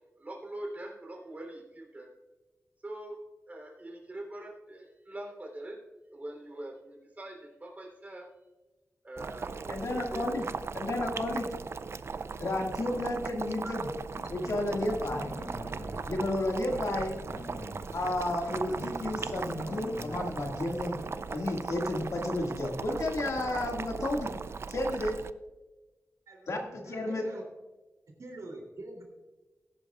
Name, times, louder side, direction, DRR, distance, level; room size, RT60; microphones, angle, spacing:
voice 1, 0.2-2.1 2.8-3.2 3.5-5.8 6.1-8.3 9.0-10.3 13.6-13.8, right 1 dB, 30° right, 0 dB, 3.4 m, -43 dB
Boiling, 9.2-25.3, right 5 dB, 50° right, 0.4 m, -38 dB
voice 2, 9.7-10.4 10.7-11.5 12.4-13.9 14.3-15.3 16.0-17.2 17.9-21.0 21.3-24.3 24.7-25.2 26.5-27.2, left 1 dB, 70° left, 1 dB, 2.1 m, -32 dB
Growling, 14.1-21.5, left 1 dB, 40° left, 1.1 m, -45 dB
voice 3, 26.8-27.4 28.2-29.0, right 2 dB, 75° right, 1 dB, 3.1 m, -44 dB
18.5 x 10.5 x 2.4 m, 1.2 s
wide cardioid pair, 125°, 6 cm